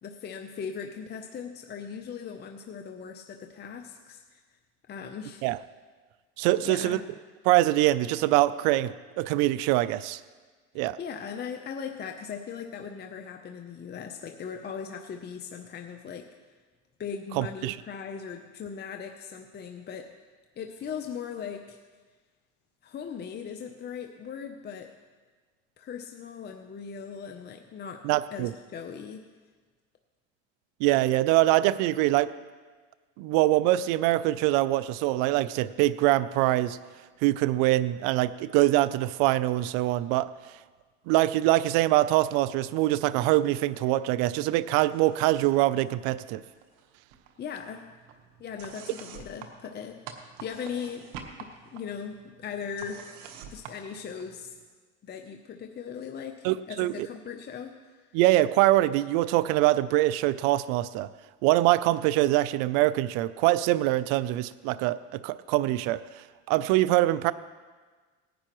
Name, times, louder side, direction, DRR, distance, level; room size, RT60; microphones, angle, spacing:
voice 1, 0.0-4.4 4.9-5.5 6.6-7.1 11.0-16.3 17.0-20.2 20.6-21.8 22.8-25.0 25.8-29.2 47.4-48.0 48.4-50.1 50.4-51.1 51.4-53.1 53.5-54.6 55.0-58.1, left 7 dB, 30° left, 5 dB, 0.7 m, -39 dB
voice 2, 6.4-7.0 7.4-10.2 10.8-11.0 17.4-17.7 28.0-28.5 30.8-32.3 33.2-36.8 37.2-40.3 41.1-46.4 56.4-57.1 58.1-61.1 61.4-67.3, right 16 dB, 70° right, 16 dB, 0.5 m, -24 dB
sound 1, 44.9-45.5 45.8-46.8 47.1-54.6, right 6 dB, 85° right, 1.4 m, -47 dB
18.5 x 10.0 x 3.1 m, 1.4 s
supercardioid pair, 110°, 37 cm